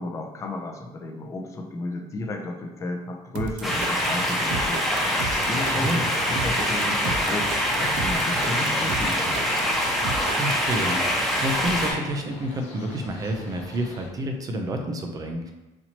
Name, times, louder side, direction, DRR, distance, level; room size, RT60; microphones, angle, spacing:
voice 1, 0.0-4.9 5.2-9.3, left 2 dB, 20° left, 1 dB, 0.5 m, -33 dB
sound 1, 3.3-10.6, right 4 dB, 80° right, 0.5 m, -34 dB
sound 2, 3.6-11.9, equal, ahead, 0.9 m, -24 dB
sound 3, 3.9-14.1, left 2 dB, 60° left, 0.8 m, -42 dB
voice 2, 5.8-6.1 10.3-15.5, right 1 dB, 25° right, 4 dB, 0.5 m, -29 dB
4.2 x 2.9 x 2.9 m, 1.1 s
cardioid pair, 140°, 13 cm